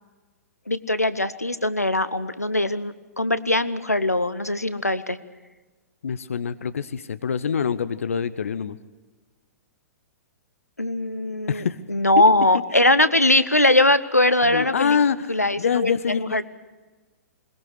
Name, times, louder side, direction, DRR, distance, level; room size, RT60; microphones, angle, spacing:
voice 1, 0.7-5.2 10.8-15.0 15.3-16.4, left 1 dB, 90° left, 14 dB, 0.9 m, -21 dB
voice 2, 6.0-8.8 11.5-11.8 14.5-15.2 15.6-16.4, left 6 dB, 65° left, 14 dB, 0.8 m, -25 dB
21.5 x 21.5 x 6.3 m, 1.3 s
figure-of-eight pair, 115°, 8 cm